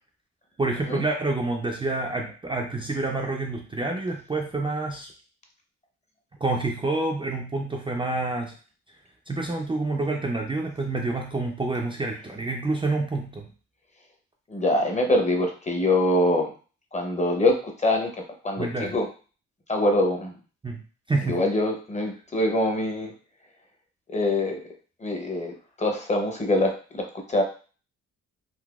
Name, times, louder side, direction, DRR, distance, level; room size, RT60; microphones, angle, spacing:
voice 1, 0.6-5.1 6.4-8.5 9.3-13.5 18.6-18.9 20.6-20.8 21.1-21.4, right 2 dB, 15° right, 0 dB, 0.4 m, -28 dB
voice 2, 14.5-16.5 16.9-18.1 18.4-19.1 19.7-20.4 21.3-23.1 24.1-24.6 25.0-25.5 25.8-27.4, left 1 dB, 25° left, 3 dB, 0.8 m, -24 dB
3.9 x 2.6 x 2.3 m, 0.38 s
cardioid pair, 90°, 30 cm